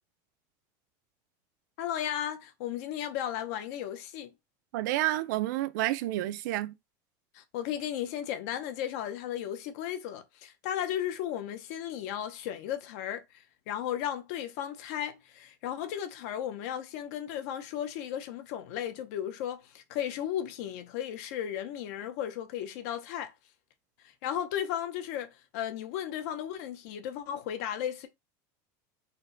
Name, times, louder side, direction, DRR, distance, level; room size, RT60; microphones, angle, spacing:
voice 1, 1.8-4.3 7.3-13.2 13.7-23.3 24.2-28.1, left 10 dB, 55° left, 0.6 m, -35 dB
voice 2, 4.7-6.7, right 15 dB, 70° right, 0.4 m, -29 dB
4.3 x 2.2 x 3.8 m
cardioid pair, 180°, 10 cm